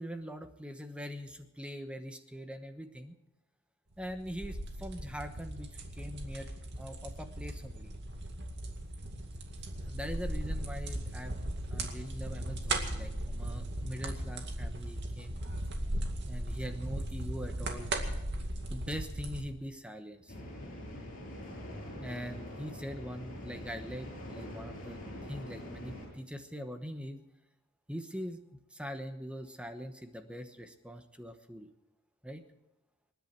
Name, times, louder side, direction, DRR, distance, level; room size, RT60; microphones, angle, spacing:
voice 1, 0.0-3.2 4.0-6.5 6.8-7.9 9.8-11.3 11.7-15.4 16.2-17.9 18.7-20.3 22.0-25.0 25.3-27.2 27.9-31.7 32.2-32.4, equal, 5° right, 7 dB, 1.0 m, -42 dB
sound 1, 4.0-19.4, right 1 dB, 55° right, 2.3 m, -37 dB
sound 2, 20.3-26.1, left 1 dB, 45° left, 7.4 m, -44 dB
27.5 x 10.5 x 4.6 m, 0.89 s
head